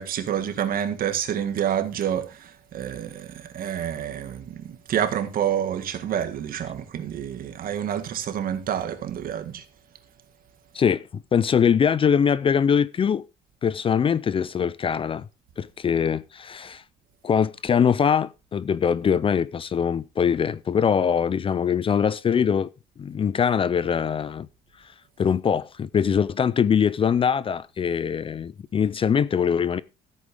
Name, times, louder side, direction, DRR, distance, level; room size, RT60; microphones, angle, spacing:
voice 1, 0.0-9.6, right 9 dB, 60° right, 1.9 m, -28 dB
voice 2, 10.7-13.2 13.6-15.3 15.6-16.8 17.2-22.7 23.0-24.5 25.2-29.8, left 7 dB, 30° left, 0.5 m, -22 dB
14.0 x 8.5 x 3.5 m
cardioid pair, 110°, 17 cm